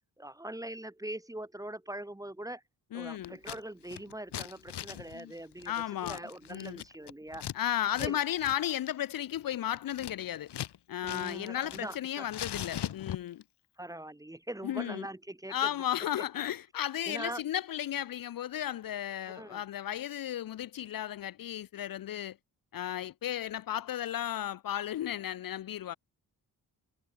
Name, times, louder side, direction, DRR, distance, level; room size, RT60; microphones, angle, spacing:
voice 1, 0.2-2.6 2.9-5.7 6.0-7.4 8.0-8.2 11.0-12.3 13.8-15.7 17.1-17.4 19.3-19.6, right 1 dB, 10° right, 0.9 m, -42 dB
voice 2, 2.9-3.4 5.1-5.3 5.7-6.2 6.5-6.8 7.5-10.5 10.9-13.4 14.6-15.1 15.5-22.4 22.7-26.0, left 11 dB, 60° left, 0.5 m, -34 dB
Scissors, 3.2-3.6 3.9-7.6 7.9-8.1 8.4-8.6 8.9-10.8 11.0-12.0 12.3-13.4, left 11 dB, 85° left, 1.6 m, -40 dB
cardioid pair, 90°, 39 cm